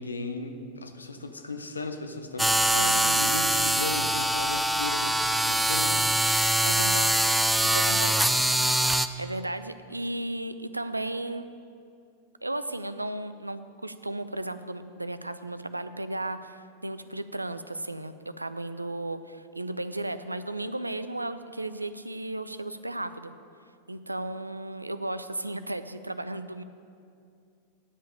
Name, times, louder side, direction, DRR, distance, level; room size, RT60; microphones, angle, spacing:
voice 1, 0.0-2.5 2.8-6.1, left 3 dB, 75° left, 6 dB, 0.8 m, -36 dB
sound 1, 2.4-9.1, right 1 dB, 5° right, 0.4 m, -23 dB
voice 2, 6.6-7.2 7.6-8.3 9.2-11.4 12.4-23.3 23.9-26.6, right 1 dB, 85° right, 11 dB, 0.4 m, -34 dB
9.5 x 5.7 x 8.3 m, 2.4 s
figure-of-eight pair, 90°, 0 cm